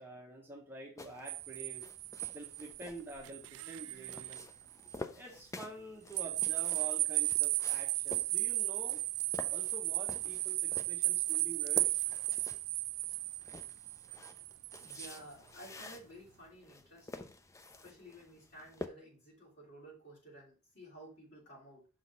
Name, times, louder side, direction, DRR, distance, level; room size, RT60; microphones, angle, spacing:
voice 1, 0.0-1.8 2.3-4.4 5.1-9.0 9.5-12.0, right 2 dB, 10° right, -3 dB, 1.1 m, -48 dB
sound 1, 1.0-18.9, left 2 dB, 15° left, 0.4 m, -50 dB
sound 2, 1.3-4.5 4.9-5.0 6.1-15.2, right 19 dB, 80° right, 0.3 m, -35 dB
voice 2, 14.8-17.3 17.8-21.9, right 1 dB, 50° left, -4 dB, 3.0 m, -54 dB
6.1 x 3.9 x 4.1 m, 0.36 s
head